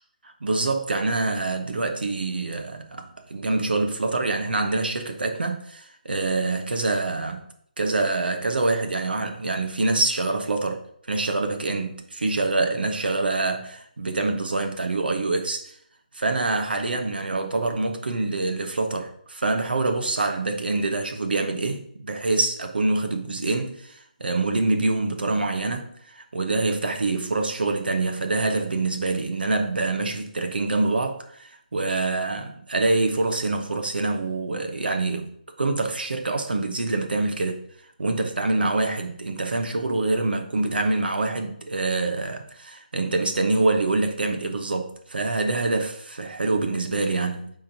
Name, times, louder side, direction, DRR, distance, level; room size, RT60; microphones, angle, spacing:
voice 1, 0.2-7.5 7.8-15.7 16.1-35.3 35.6-37.6 38.0-47.5, right 3 dB, 90° right, 1.1 m, -25 dB
10.0 x 3.7 x 2.9 m
hypercardioid pair, 180°, 5 cm